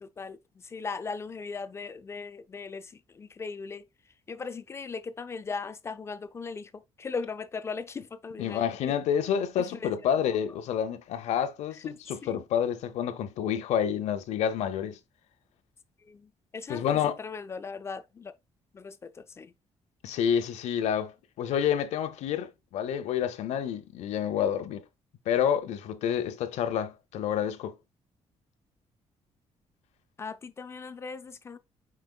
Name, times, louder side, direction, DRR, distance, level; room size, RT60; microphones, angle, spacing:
voice 1, 0.0-9.0 9.6-9.9 11.7-12.4 16.0-18.3 18.7-19.5 30.2-31.6, left 4 dB, 25° left, 0.3 m, -39 dB
voice 2, 8.4-15.0 16.7-17.1 20.0-21.1 21.4-24.8 25.3-27.8, left 9 dB, 85° left, 0.8 m, -28 dB
5.1 x 4.5 x 2.3 m
cardioid pair, 180°, 11 cm